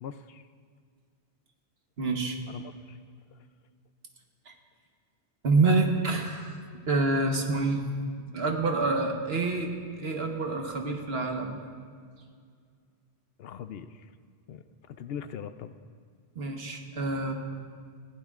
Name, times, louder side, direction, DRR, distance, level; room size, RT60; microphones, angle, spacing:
voice 1, 0.0-0.4 2.5-3.0 3.3-3.4 13.4-14.1 14.5-15.8, left 8 dB, 70° left, 11 dB, 0.8 m, -41 dB
voice 2, 2.0-2.4 4.5-4.6 5.4-7.8 8.3-11.6 16.3-17.3, right 3 dB, 65° right, 3 dB, 1.4 m, -27 dB
20.0 x 15.0 x 2.4 m, 2.1 s
omnidirectional pair, 1.1 m